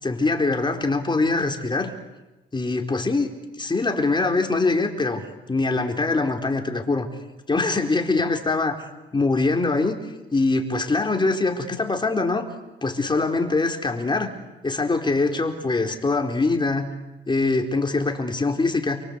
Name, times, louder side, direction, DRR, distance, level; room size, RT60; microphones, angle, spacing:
voice 1, 0.0-1.9 2.5-5.2 5.5-7.1 7.5-8.7 9.1-10.0 10.3-12.5 12.8-14.3 14.6-16.9 17.3-19.0, left 3 dB, 25° left, 4 dB, 4.3 m, -23 dB
28.5 x 24.5 x 8.2 m, 1.1 s
cardioid pair, 90°, 20 cm